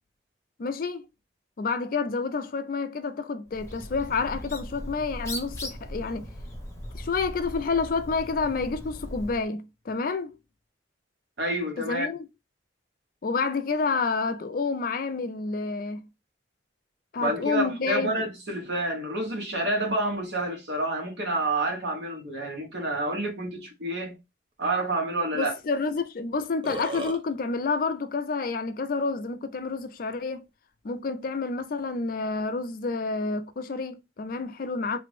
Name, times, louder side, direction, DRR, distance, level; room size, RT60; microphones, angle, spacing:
voice 1, 0.6-1.0 1.6-6.3 6.9-10.3 11.8-12.3 13.2-16.1 17.1-18.3 25.3-30.5 30.8-35.0, left 4 dB, 50° left, 0.4 m, -29 dB
Bird, 3.5-9.4, left 1 dB, 15° left, 0.8 m, -39 dB
voice 2, 11.4-12.1 17.2-24.2 24.6-25.5, right 2 dB, 65° right, 1.0 m, -28 dB
Burping eructation, 26.0-26.1 26.4-27.2, right 2 dB, 30° right, 0.5 m, -35 dB
3.3 x 2.0 x 3.1 m
head